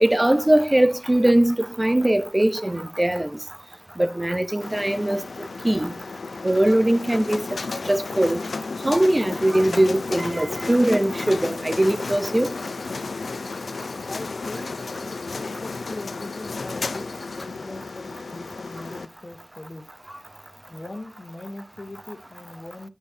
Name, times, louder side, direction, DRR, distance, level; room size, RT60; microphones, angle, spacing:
voice 1, 0.0-3.3 4.0-5.2 5.6-5.9 6.4-7.5 7.9-8.4 8.8-12.5, right 1 dB, 20° right, 0.8 m, -21 dB
sound 1, 4.6-19.0, left 4 dB, 85° left, 0.6 m, -33 dB
voice 2, 14.1-19.9 20.7-22.9, left 2 dB, 40° left, 1.3 m, -40 dB
9.8 x 9.7 x 2.8 m
wide cardioid pair, 75°, 0 cm